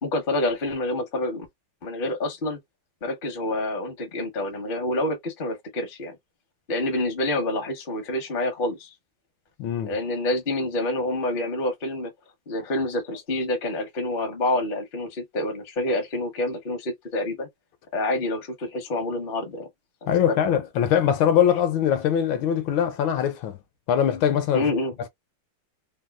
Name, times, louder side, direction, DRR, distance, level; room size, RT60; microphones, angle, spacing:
voice 1, 0.0-1.5 1.8-2.6 3.0-6.1 6.7-8.9 9.8-12.1 12.5-17.5 17.9-19.7 20.0-20.4 24.5-25.1, left 1 dB, 50° left, 0.6 m, -27 dB
voice 2, 9.6-9.9 20.1-23.6 23.9-24.7, left 9 dB, 75° left, 1.3 m, -22 dB
3.5 x 2.3 x 2.3 m
omnidirectional pair, 2.4 m